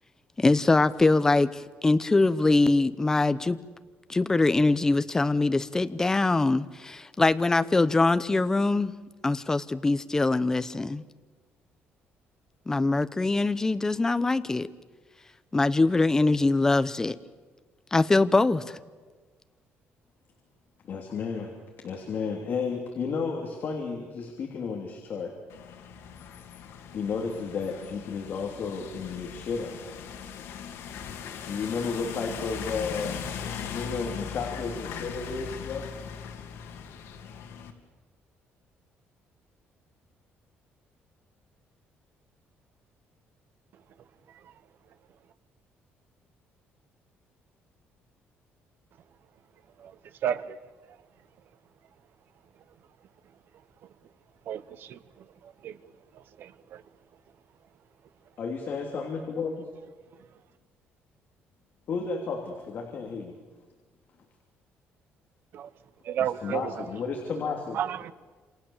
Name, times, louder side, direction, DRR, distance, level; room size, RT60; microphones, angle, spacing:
voice 1, 0.4-3.6 4.1-8.9 9.2-11.0 12.7-14.7 15.5-17.2 17.9-18.8, left 3 dB, 15° left, 0.8 m, -23 dB
voice 2, 20.8-21.5 21.8-25.3 26.9-29.8 31.4-33.2 33.7-35.9 58.4-59.7 61.9-63.3 66.2-67.8, left 5 dB, 45° left, 3.2 m, -32 dB
sound 1, 25.5-37.7, left 7 dB, 80° left, 2.9 m, -39 dB
voice 3, 50.2-50.6 54.5-55.0 55.4-55.8 56.4-56.8 65.5-65.7 66.0-66.7 67.7-68.1, right 9 dB, 55° right, 1.1 m, -32 dB
29.0 x 28.0 x 7.3 m
cardioid pair, 170°, 4 cm